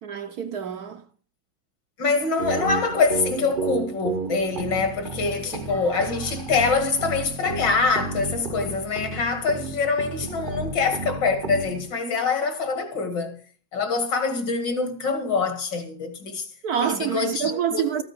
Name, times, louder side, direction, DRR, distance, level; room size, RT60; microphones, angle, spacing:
voice 1, 0.0-1.0 16.6-18.0, right 8 dB, 60° right, 1.1 m, -27 dB
voice 2, 2.0-13.4 13.7-16.5 16.8-18.0, left 4 dB, 65° left, 2.6 m, -25 dB
sound 1, 2.4-11.9, right 3 dB, 40° right, 0.8 m, -32 dB
13.5 x 8.9 x 6.7 m
omnidirectional pair, 2.1 m